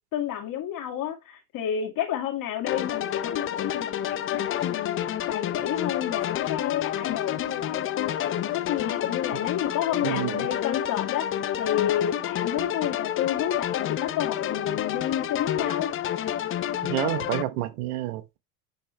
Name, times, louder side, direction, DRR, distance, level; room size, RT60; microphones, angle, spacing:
voice 1, 0.1-5.0 5.3-15.9, left 10 dB, 45° left, 2.2 m, -30 dB
sound 1, 2.7-17.4, left 11 dB, 30° left, 0.6 m, -29 dB
voice 2, 10.0-10.5 16.8-18.4, right 13 dB, 75° right, 1.1 m, -29 dB
10.0 x 3.7 x 3.3 m
hypercardioid pair, 100°, 44 cm